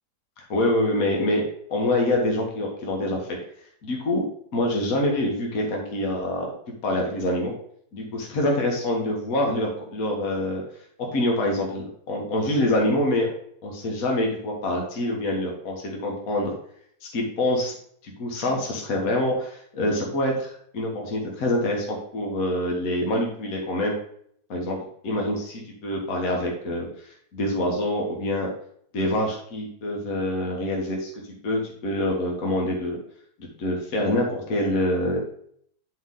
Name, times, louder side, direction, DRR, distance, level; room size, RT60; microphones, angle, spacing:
voice 1, 0.4-1.4 1.7-3.3 3.8-4.2 4.5-6.5 6.8-7.5 7.9-10.6 11.1-13.3 13.6-16.5 17.1-17.7 18.0-23.9 24.5-24.8 25.0-28.5 28.9-31.1 31.4-33.0 33.4-35.2, left 1 dB, 60° left, 0 dB, 1.7 m, -25 dB
10.0 x 3.9 x 3.8 m, 0.64 s
omnidirectional pair, 1.7 m